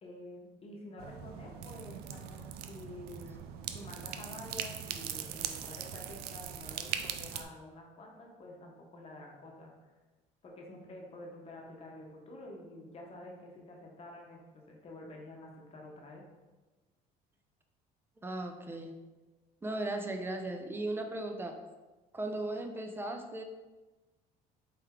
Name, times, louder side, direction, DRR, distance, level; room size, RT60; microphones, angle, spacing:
voice 1, 0.0-3.4 3.7-9.7 10.4-16.2, left 1 dB, 35° left, 0 dB, 1.0 m, -49 dB
sound 1, 1.0-7.4, right 9 dB, 75° right, 0.4 m, -40 dB
voice 2, 18.2-19.0 19.6-21.6 22.1-23.4, right 2 dB, 15° right, 5 dB, 0.5 m, -37 dB
4.4 x 3.3 x 3.6 m, 1.2 s
cardioid pair, 105°, 17 cm